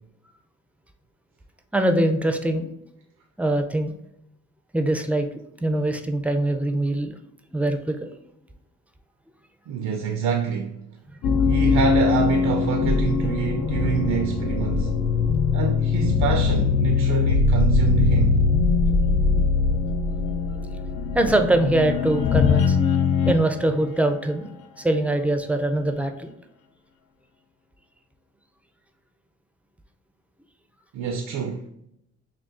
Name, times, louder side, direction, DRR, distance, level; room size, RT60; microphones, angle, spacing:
voice 1, 1.7-2.7 3.4-3.9 4.7-5.3 5.6-7.1 7.5-8.1 11.3-11.4 21.1-22.8 23.3-24.5 24.8-26.3, right 1 dB, 5° right, 0.3 m, -23 dB
voice 2, 9.7-10.8 11.4-15.0 15.5-18.5 30.9-31.7, right 6 dB, 75° right, 0.4 m, -26 dB
sound 1, 11.2-23.5, left 4 dB, 80° left, 0.5 m, -21 dB
5.9 x 2.3 x 2.5 m
cardioid pair, 95°, 29 cm